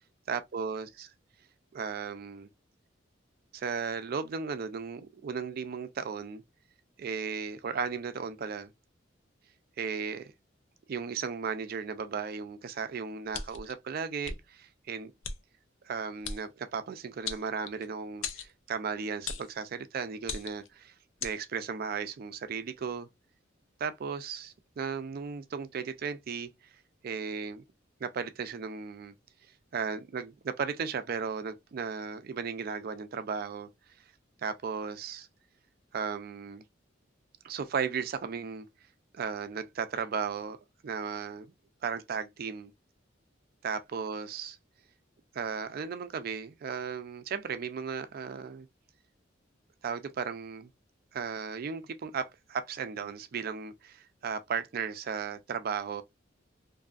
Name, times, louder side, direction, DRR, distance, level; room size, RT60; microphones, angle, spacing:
voice 1, 0.3-1.1 1.7-2.5 3.5-6.4 7.0-8.7 9.8-10.3 10.9-15.1 15.8-20.9 21.2-23.1 23.8-26.5 27.0-27.6 28.0-29.1 29.7-33.7 34.4-35.3 35.9-36.6 37.4-38.7 39.1-40.6 40.8-41.5 41.8-42.7 43.6-44.6 45.3-48.7 49.8-50.7 51.1-56.0, right 6 dB, 50° right, 0.4 m, -35 dB
sound 1, 13.3-13.7 14.2-14.4 15.2-15.4 16.2-16.4 17.3-17.9 18.2-18.5 19.3-19.5 20.2-20.7 21.2-21.4, left 6 dB, 90° left, 0.4 m, -37 dB
2.6 x 2.3 x 2.4 m
head